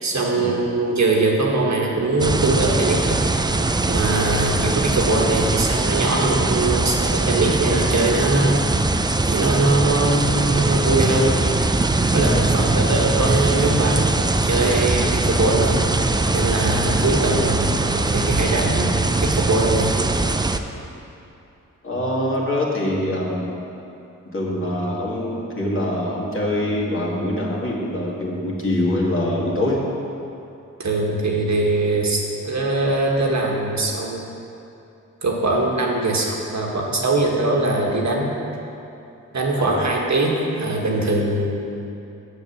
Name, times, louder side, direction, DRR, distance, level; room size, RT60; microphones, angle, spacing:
voice 1, 0.0-3.2 3.9-8.6 9.2-11.4 12.1-15.7 16.3-19.9 30.8-34.2 35.2-38.3 39.3-41.7, right 2 dB, 60° right, -1 dB, 1.6 m, -21 dB
sound 1, 2.2-20.6, right 2 dB, 15° right, 0.4 m, -21 dB
voice 2, 21.8-23.5 24.3-29.8 39.5-39.9, left 1 dB, 40° left, -4 dB, 2.2 m, -24 dB
7.1 x 7.0 x 7.2 m, 2.8 s
cardioid pair, 60°, 32 cm